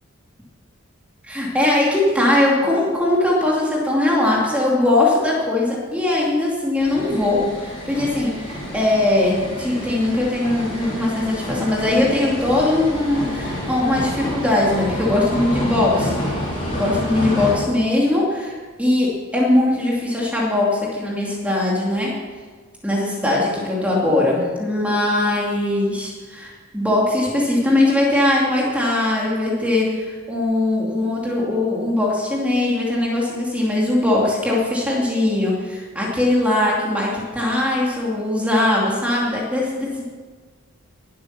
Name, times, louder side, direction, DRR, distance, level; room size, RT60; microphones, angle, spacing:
voice 1, 1.2-16.1 16.7-18.5 18.8-22.1 22.8-39.9, left 1 dB, 5° right, -4 dB, 2.6 m, -20 dB
sound 1, 6.8-17.5, left 1 dB, 25° left, 4.4 m, -28 dB
18.5 x 8.6 x 6.0 m, 1.5 s
head